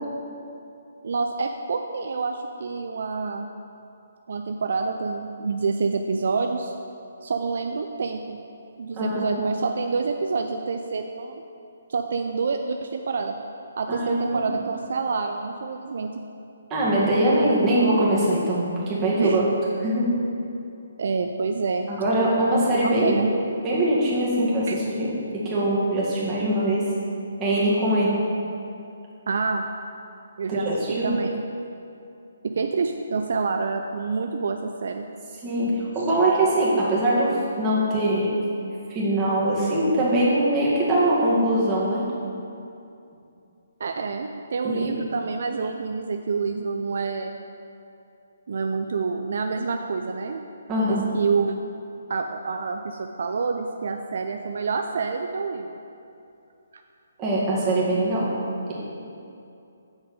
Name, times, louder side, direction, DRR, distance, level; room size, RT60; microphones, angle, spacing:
voice 1, 1.0-3.5 4.3-6.7 7.2-8.4 8.8-11.4 11.9-13.4 13.8-16.2 19.2-19.4 21.0-21.9 22.5-23.3 24.7-24.8 29.3-29.6 30.4-31.4 32.4-35.0 43.8-47.4 48.5-50.4 50.8-51.6 52.1-55.7, right 4 dB, 65° right, 5 dB, 0.4 m, -27 dB
voice 2, 9.0-9.3 13.9-14.4 16.7-19.4 19.8-20.1 21.9-23.1 23.6-25.1 25.3-26.8 27.4-28.1 30.5-31.1 35.4-38.4 38.9-42.0 44.6-44.9 50.7-51.0 57.2-58.3, right 1 dB, 20° right, -7 dB, 2.1 m, -22 dB
7.4 x 6.2 x 4.9 m, 2.7 s
hypercardioid pair, 155°, 0 cm